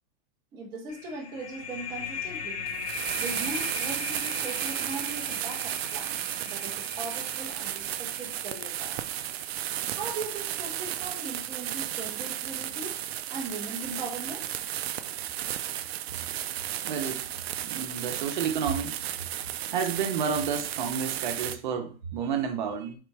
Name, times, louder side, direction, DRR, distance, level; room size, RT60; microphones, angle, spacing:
voice 1, 0.5-2.7 3.2-6.2 6.4-9.0 9.9-13.0 13.3-14.5, right 3 dB, 10° right, -3 dB, 0.5 m, -39 dB
sound 1, 0.9-10.2, left 5 dB, 40° left, 1.0 m, -39 dB
sound 2, 2.7-21.6, right 12 dB, 90° right, 0.5 m, -34 dB
voice 2, 16.8-17.2 17.6-18.9 19.7-23.0, right 6 dB, 50° right, 5 dB, 0.8 m, -30 dB
3.7 x 3.1 x 4.6 m, 0.38 s
supercardioid pair, 180°, 30 cm